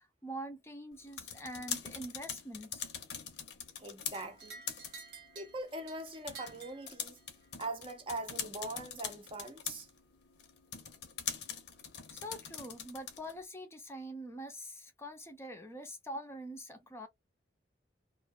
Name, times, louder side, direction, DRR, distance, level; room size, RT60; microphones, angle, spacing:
voice 1, 0.0-2.9 12.1-17.1, equal, 15° left, 0.6 m, -44 dB
sound 1, 0.9-13.4, left 8 dB, 80° left, 0.8 m, -44 dB
voice 2, 3.8-4.6 5.3-7.2 7.6-9.9, right 2 dB, 30° right, 0.6 m, -42 dB
sound 2, 4.1-7.5, right 5 dB, 70° right, 0.8 m, -52 dB
2.5 x 2.3 x 2.4 m
head